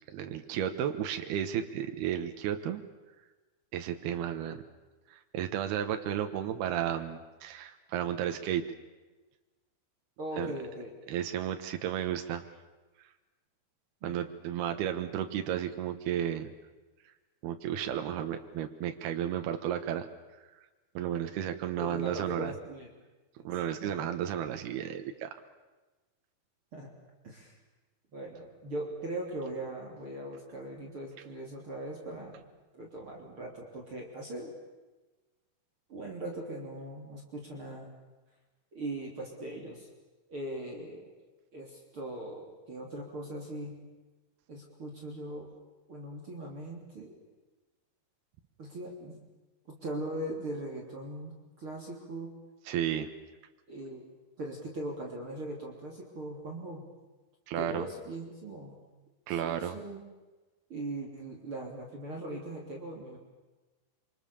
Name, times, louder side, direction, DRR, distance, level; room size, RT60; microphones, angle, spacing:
voice 1, 0.1-2.8 3.7-4.6 5.1-8.6 10.4-10.5 11.1-12.5 14.0-16.5 17.4-20.1 20.9-22.5 23.4-25.3 52.7-53.1 57.5-57.9 59.3-59.8, right 10 dB, 85° right, 7 dB, 3.2 m, -33 dB
voice 2, 10.2-10.9 14.0-14.2 21.8-22.9 23.8-24.0 26.7-26.9 27.2-27.6 28.1-32.5 32.7-34.5 35.9-37.9 38.7-39.9 40.3-41.1 41.5-43.8 44.5-45.5 45.9-47.2 48.6-49.2 49.7-52.3 53.7-54.0 54.4-56.8 57.6-58.8 59.3-60.0 60.7-63.2, right 1 dB, 35° right, -1 dB, 3.8 m, -40 dB
27.0 x 25.5 x 7.0 m, 1.2 s
omnidirectional pair, 4.5 m